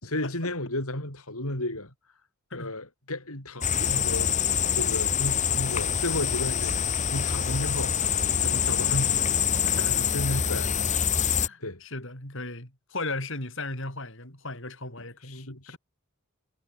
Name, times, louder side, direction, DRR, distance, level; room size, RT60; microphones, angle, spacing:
voice 1, 0.0-1.9 2.5-6.8 7.1-8.0 8.3-9.3 9.8-10.9 11.6-11.8 15.2-15.8, left 1 dB, 75° left, 6.8 m, -33 dB
sound 1, 3.6-11.5, left 8 dB, 30° left, 1.4 m, -25 dB
voice 2, 9.6-10.0 11.4-15.8, left 2 dB, 60° left, 7.8 m, -36 dB
head